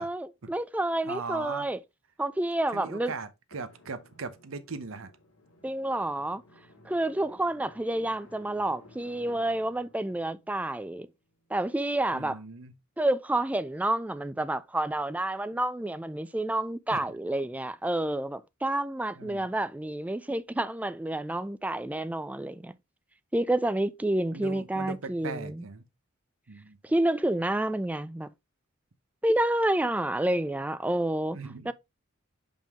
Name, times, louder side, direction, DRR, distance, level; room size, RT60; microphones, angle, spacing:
voice 1, 0.0-1.8 2.2-3.1 5.6-6.4 6.8-11.1 11.5-12.4 13.0-22.7 23.3-25.7 26.8-28.3 29.2-31.4 31.7-31.8, right 1 dB, 5° right, 0.3 m, -29 dB
voice 2, 1.0-1.7 2.7-5.1 12.1-12.7 16.9-17.0 19.2-19.5 24.3-25.8 26.5-26.8 31.3-31.7, right 4 dB, 75° right, 0.8 m, -39 dB
Drum, 3.5-11.8, left 2 dB, 85° left, 2.3 m, -56 dB
5.4 x 5.2 x 3.5 m
head